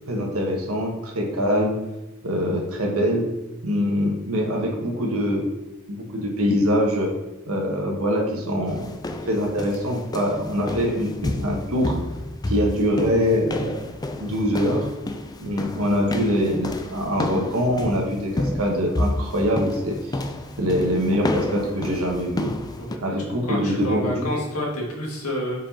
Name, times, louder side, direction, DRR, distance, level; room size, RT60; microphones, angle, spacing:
voice 1, 0.1-1.8 2.2-3.3 3.6-5.5 5.9-7.1 7.5-8.9 9.3-11.9 12.4-13.8 14.2-14.9 15.4-20.2 20.6-22.5 23.0-24.3, equal, 70° right, -1 dB, 1.4 m, -23 dB
sound 1, 8.7-23.0, left 1 dB, 20° left, 0.4 m, -31 dB
voice 2, 22.8-25.7, equal, 80° left, -2 dB, 1.7 m, -29 dB
4.9 x 4.6 x 4.3 m, 0.99 s
head